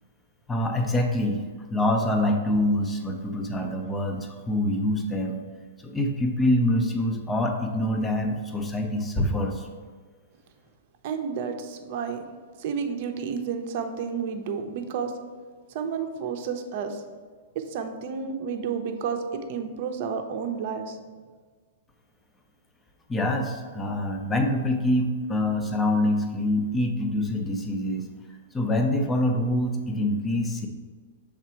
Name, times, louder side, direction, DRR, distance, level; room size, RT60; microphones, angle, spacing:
voice 1, 0.5-1.4 1.7-5.4 5.8-9.7 23.1-28.1 28.5-30.7, left 1 dB, 10° left, 3 dB, 0.6 m, -25 dB
voice 2, 11.0-12.2 12.6-15.1 15.7-17.0 17.5-21.0, right 6 dB, 50° right, 5 dB, 0.7 m, -31 dB
5.8 x 3.6 x 4.5 m, 1.5 s
hypercardioid pair, 145°, 0 cm